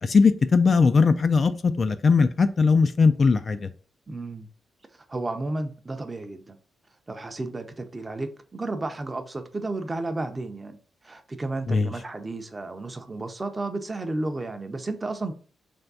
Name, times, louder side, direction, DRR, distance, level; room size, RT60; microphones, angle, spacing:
voice 1, 0.0-3.7 11.7-11.9, left 4 dB, 40° left, 0.3 m, -20 dB
voice 2, 4.1-4.5 5.1-6.6 7.1-10.8 11.0-15.3, right 2 dB, 20° right, 0.5 m, -32 dB
3.5 x 3.3 x 3.9 m
wide cardioid pair, 135°, 0 cm